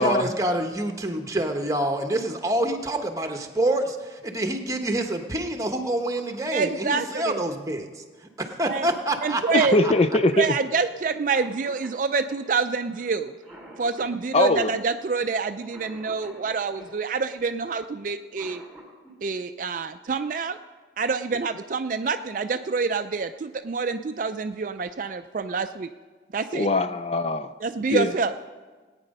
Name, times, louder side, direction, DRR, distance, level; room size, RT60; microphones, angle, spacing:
voice 1, 0.0-3.8 4.2-7.9 8.4-9.9, right 1 dB, 15° right, 1.0 m, -27 dB
voice 2, 6.5-7.4 8.7-8.9 9.2-9.7 10.3-13.3 13.8-18.6 19.2-20.6 21.0-25.9 26.3-26.7 27.6-28.3, right 4 dB, 45° right, 0.4 m, -27 dB
voice 3, 9.5-10.5 14.3-14.7 26.5-27.5 27.9-28.1, left 2 dB, 35° left, 0.4 m, -21 dB
Cough, 9.6-17.0 18.1-19.1 20.8-20.9 21.9-22.2 22.6-22.7 23.1-23.6, right 1 dB, ahead, 3.1 m, -49 dB
19.5 x 9.0 x 5.3 m
head